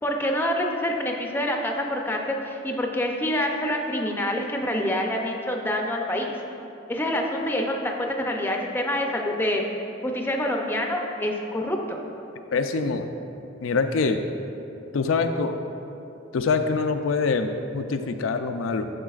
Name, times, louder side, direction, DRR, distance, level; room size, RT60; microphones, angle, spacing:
voice 1, 0.0-6.3 6.9-9.6 10.0-12.0, left 1 dB, 10° left, 1 dB, 0.5 m, -26 dB
voice 2, 12.5-13.1 13.6-14.2 14.9-15.6 16.3-18.9, left 4 dB, 85° left, 7 dB, 0.4 m, -24 dB
10.0 x 6.5 x 2.4 m, 2.8 s
head